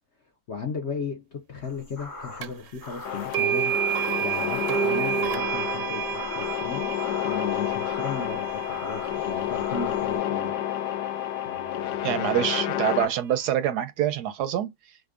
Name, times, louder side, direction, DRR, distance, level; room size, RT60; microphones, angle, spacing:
voice 1, 0.5-3.8 4.2-6.9 7.2-10.6 11.4-12.5, left 5 dB, 55° left, 0.8 m, -36 dB
sound 1, 1.6-10.2, left 2 dB, 15° left, 0.9 m, -42 dB
sound 2, 2.4-2.5 3.3-11.4, right 10 dB, 90° right, 1.3 m, -30 dB
sound 3, 3.1-13.1, left 11 dB, 75° left, 1.1 m, -30 dB
voice 2, 12.0-14.7, right 11 dB, 70° right, 1.0 m, -25 dB
5.0 x 2.2 x 2.4 m
omnidirectional pair, 1.9 m